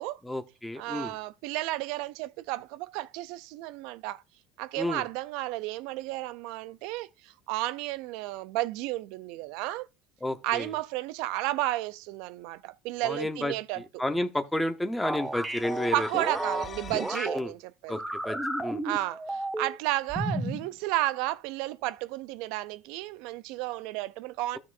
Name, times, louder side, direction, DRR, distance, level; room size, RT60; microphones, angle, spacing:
voice 1, 0.2-1.1 4.8-5.0 10.2-10.7 13.0-16.1 17.3-17.5 17.9-18.0 18.2-18.8, left 1 dB, 5° left, 0.9 m, -31 dB
voice 2, 0.8-4.2 4.6-9.9 10.4-13.8 15.9-18.0 18.8-24.6, right 17 dB, 70° right, 0.4 m, -32 dB
sound 1, 15.0-17.4 17.9-19.8 20.1-20.7, right 1 dB, 15° right, 1.2 m, -32 dB
sound 2, 15.2-17.3, left 7 dB, 35° left, 0.8 m, -44 dB
12.5 x 6.1 x 2.6 m
supercardioid pair, 85°, 0 cm